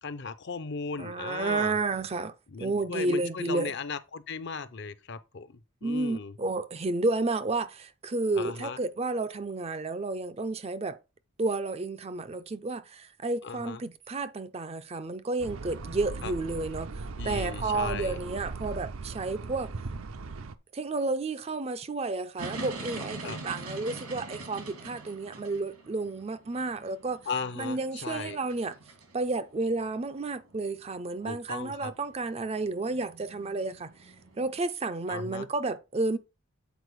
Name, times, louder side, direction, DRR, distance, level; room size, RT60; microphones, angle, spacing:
voice 1, 0.0-1.7 2.5-6.3 8.4-8.8 13.4-13.8 16.2-16.3 17.2-18.2 23.2-23.4 27.3-28.4 31.2-31.9 35.1-35.5, left 4 dB, 50° left, 0.6 m, -37 dB
voice 2, 1.0-2.3 2.6-3.7 5.8-11.0 11.4-19.7 20.7-27.2 27.6-28.8 29.1-36.2, right 3 dB, 25° right, 0.4 m, -31 dB
sound 1, 15.4-20.5, right 3 dB, 70° right, 0.6 m, -38 dB
sound 2, 22.4-34.6, right 3 dB, 90° right, 2.5 m, -44 dB
8.1 x 4.5 x 4.6 m
head